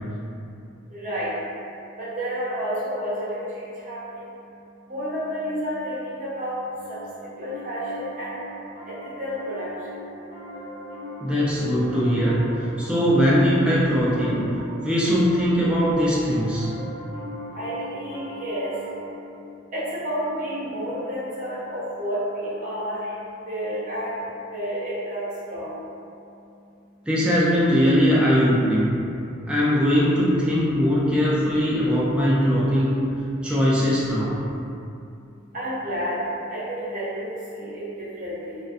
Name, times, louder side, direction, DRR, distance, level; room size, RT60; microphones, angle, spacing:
voice 1, 2.0-4.2 4.9-6.6 7.4-8.3 8.9-10.0 17.5-18.7 19.7-22.2 22.6-23.0 23.5-24.1 24.5-25.2 25.5-25.7 35.5-36.2 36.5-38.6, equal, 40° right, -10 dB, 0.8 m, -30 dB
Piano, 6.6-19.1, equal, 25° left, 1.0 m, -40 dB
voice 2, 11.2-14.5 14.8-16.7 27.1-28.9 29.5-33.0 33.4-34.4, equal, 5° right, -8 dB, 0.3 m, -20 dB
2.4 x 2.2 x 2.4 m, 2.6 s
head